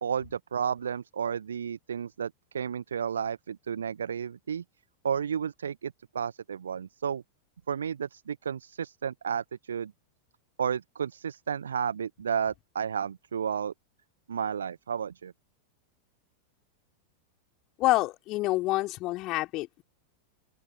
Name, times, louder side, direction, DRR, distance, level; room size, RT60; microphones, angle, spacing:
voice 1, 0.0-4.6 5.0-7.2 7.7-9.9 10.6-13.7 14.3-15.3, right 7 dB, 70° right, 0.7 m, -32 dB
voice 2, 17.8-19.8, left 19 dB, 40° left, 3.8 m, -27 dB
open air
figure-of-eight pair, 90°, 0 cm